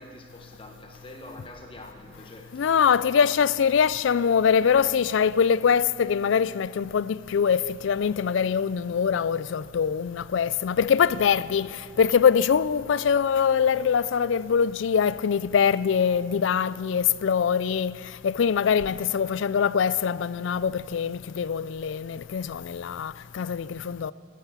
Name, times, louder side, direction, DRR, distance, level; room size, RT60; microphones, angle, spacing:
voice 1, 0.0-4.0 10.5-10.6, left 1 dB, 25° left, 1.0 m, -47 dB
voice 2, 2.5-18.0 18.2-24.1, left 7 dB, 70° left, 0.4 m, -23 dB
12.5 x 12.5 x 8.3 m
head